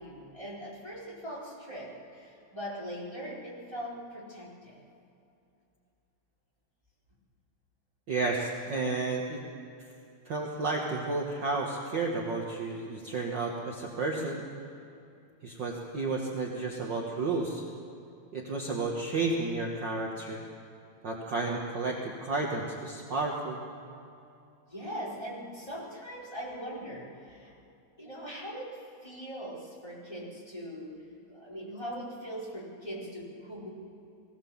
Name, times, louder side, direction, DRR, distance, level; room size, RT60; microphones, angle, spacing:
voice 1, 0.0-4.8 24.7-27.5 28.0-31.0 31.3-33.7, equal, 10° left, -7 dB, 4.1 m, -41 dB
voice 2, 8.1-9.4 10.2-14.5 15.4-17.6 18.3-20.4 21.0-23.6, right 3 dB, 55° right, -1 dB, 1.2 m, -32 dB
21.5 x 17.0 x 7.2 m, 2.6 s
omnidirectional pair, 4.3 m